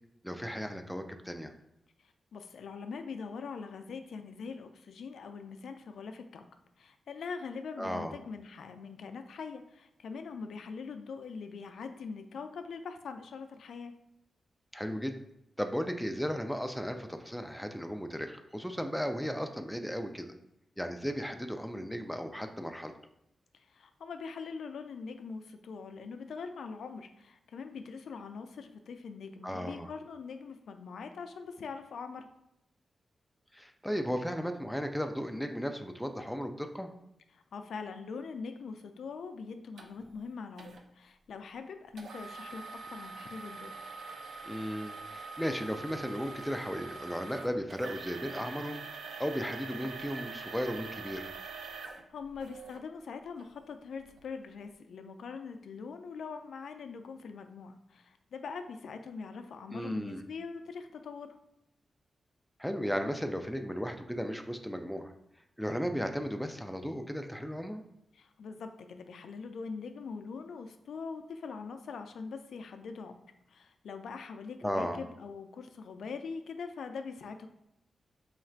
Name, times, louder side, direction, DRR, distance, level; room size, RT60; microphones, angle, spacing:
voice 1, 0.2-1.5 7.8-8.1 14.7-15.2 15.6-20.3 20.8-22.9 29.4-29.9 33.5-36.9 44.4-51.3 59.7-60.2 62.6-65.1 65.6-67.8 74.6-75.0, equal, ahead, 5 dB, 0.4 m, -35 dB
voice 2, 2.0-6.4 6.8-14.0 23.5-32.3 37.3-43.7 52.1-61.4 68.1-73.2 73.5-77.5, left 5 dB, 80° left, 7 dB, 0.3 m, -43 dB
sound 1, 39.8-39.9 40.6-40.8 42.0-52.8 53.4-53.5 54.1-54.2, right 4 dB, 85° right, 0.4 m, -44 dB
3.1 x 2.4 x 4.4 m, 0.84 s
cardioid pair, 90°, 0 cm